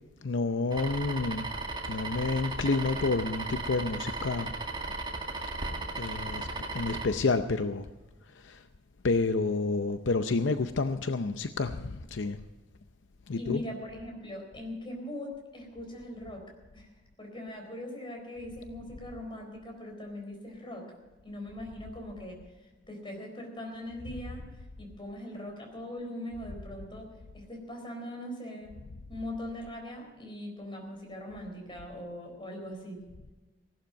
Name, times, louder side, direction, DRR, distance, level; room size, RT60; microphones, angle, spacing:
voice 1, 0.2-1.5 1.9-4.5 5.6-7.9 8.4-8.6 9.0-12.4 13.3-13.6, left 3 dB, 70° left, 9 dB, 0.6 m, -29 dB
sound 1, 0.7-7.0, right 3 dB, 25° right, 1.9 m, -36 dB
voice 2, 13.3-16.4 16.7-16.9 17.2-20.9 21.2-22.4 22.9-24.4 24.8-28.8 29.1-33.0, left 1 dB, 25° left, 2 dB, 4.2 m, -41 dB
17.0 x 12.0 x 5.2 m, 1.2 s
head